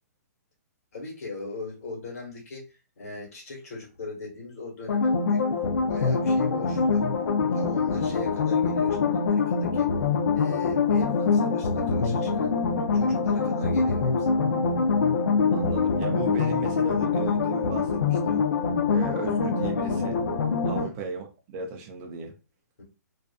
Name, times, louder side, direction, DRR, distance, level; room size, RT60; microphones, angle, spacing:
voice 1, 0.9-7.0 7.5-9.9 10.3-12.6 12.9-14.3 20.7-21.0 22.8-22.9, left 3 dB, 55° left, 1.3 m, -39 dB
sound 1, 4.9-20.9, left 4 dB, 90° left, 0.5 m, -24 dB
voice 2, 15.5-18.5 18.9-20.2 20.6-22.3, right 4 dB, 15° right, 0.4 m, -35 dB
2.4 x 2.4 x 2.3 m
hypercardioid pair, 170°, 9 cm